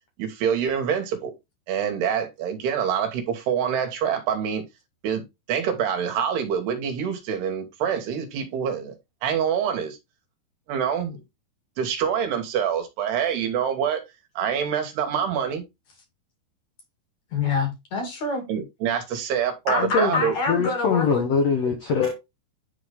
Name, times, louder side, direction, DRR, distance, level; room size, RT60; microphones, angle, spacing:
voice 1, 0.2-1.3 1.7-4.6 5.0-5.2 5.5-9.0 9.2-10.0 10.7-11.2 11.8-14.0 14.4-15.6 18.5-20.4, right 8 dB, 75° right, 3.4 m, -26 dB
voice 2, 17.3-18.4 19.7-21.2, left 4 dB, 50° left, 3.2 m, -26 dB
voice 3, 19.8-22.1, left 5 dB, 70° left, 1.5 m, -23 dB
10.5 x 4.0 x 3.4 m
omnidirectional pair, 4.8 m